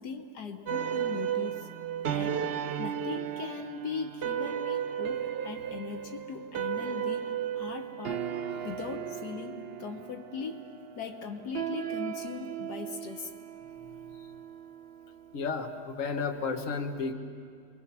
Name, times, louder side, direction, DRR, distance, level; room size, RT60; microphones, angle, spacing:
voice 1, 0.0-1.7 2.1-2.4 2.8-8.4 8.6-10.7 11.0-13.3, left 5 dB, 70° left, 5 dB, 1.6 m, -39 dB
sound 1, 0.7-15.2, right 9 dB, 55° right, 0.6 m, -35 dB
voice 2, 15.3-17.1, left 4 dB, 50° left, 4 dB, 1.6 m, -32 dB
27.5 x 22.0 x 6.0 m, 2.3 s
omnidirectional pair, 1.8 m